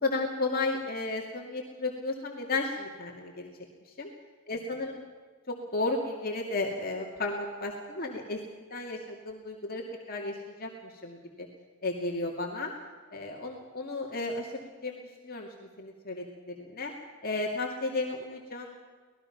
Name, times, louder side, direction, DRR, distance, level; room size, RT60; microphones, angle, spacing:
voice 1, 0.0-3.5 3.9-4.1 4.5-5.0 5.5-8.4 8.7-9.8 10.1-11.5 11.8-12.7 13.1-15.5 15.8-16.9 17.2-18.8, left 3 dB, 45° left, 0 dB, 2.4 m, -33 dB
25.0 x 19.0 x 5.9 m, 1.5 s
head